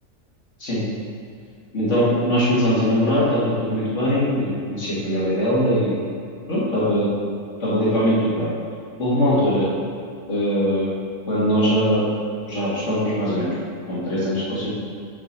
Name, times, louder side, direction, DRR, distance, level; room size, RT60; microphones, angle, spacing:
voice 1, 1.7-6.1 6.5-7.1 7.6-8.5 9.0-9.7 10.3-10.9 11.3-12.0 12.5-13.5 13.9-14.7, equal, 50° left, -8 dB, 2.3 m, -21 dB
7.4 x 5.6 x 4.2 m, 2.4 s
omnidirectional pair, 1.6 m